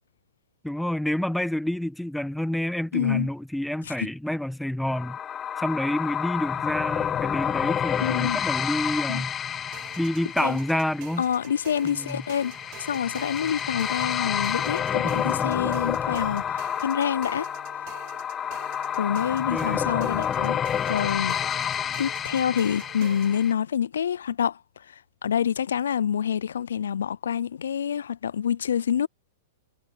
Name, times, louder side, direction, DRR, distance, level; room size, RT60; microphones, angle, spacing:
voice 1, 0.6-5.2 5.6-9.3 10.0-11.2 11.8-12.2 15.0-15.5 19.5-19.9, left 1 dB, ahead, 1.4 m, -28 dB
voice 2, 2.9-3.3 3.8-4.1 8.0-8.4 9.1-9.2 10.4-10.6 11.2-17.5 19.0-20.6 20.9-21.4 22.0-24.6 25.2-29.1, left 8 dB, 75° left, 0.5 m, -27 dB
sound 1, 4.9-23.5, left 9 dB, 25° left, 1.5 m, -29 dB
sound 2, 9.7-23.4, right 31 dB, 45° right, 6.8 m, -47 dB
hypercardioid pair, 110°, 0 cm